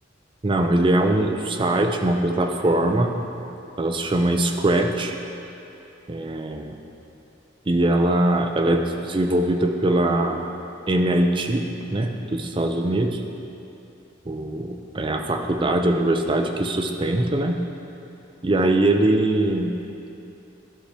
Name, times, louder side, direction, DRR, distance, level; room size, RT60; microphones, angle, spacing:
voice 1, 0.4-3.1 3.8-5.2 6.1-6.8 7.7-10.5 10.9-13.2 14.3-17.6 18.4-19.8, right 1 dB, 25° right, 4 dB, 0.5 m, -22 dB
12.0 x 5.8 x 3.3 m, 2.8 s
head